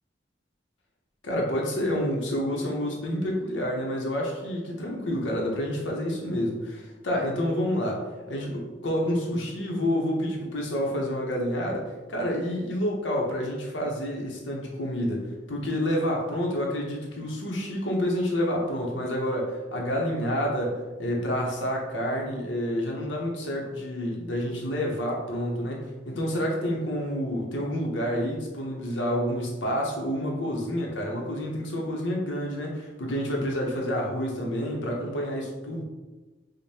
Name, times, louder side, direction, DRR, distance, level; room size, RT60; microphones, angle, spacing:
voice 1, 1.2-35.8, equal, 75° left, -1 dB, 0.8 m, -29 dB
5.0 x 2.2 x 2.7 m, 1.2 s
head